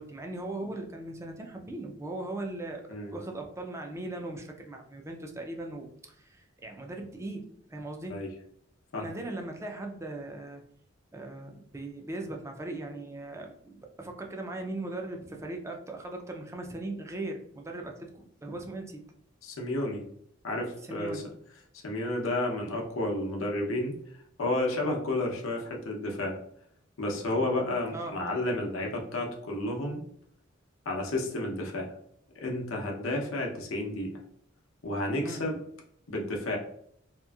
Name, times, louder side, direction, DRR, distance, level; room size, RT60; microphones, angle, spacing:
voice 1, 0.0-2.8 3.1-7.4 7.7-8.2 9.0-10.6 11.1-19.0 20.8-21.2 27.9-28.2 35.2-35.5, right 2 dB, 15° right, 3 dB, 0.4 m, -39 dB
voice 2, 19.4-20.0 20.4-21.2 21.8-23.9 24.4-26.4 27.0-30.0 30.9-31.9 32.4-34.1 34.8-35.6 36.1-36.6, left 1 dB, 85° left, 1 dB, 0.7 m, -31 dB
2.9 x 2.5 x 2.3 m, 0.68 s
head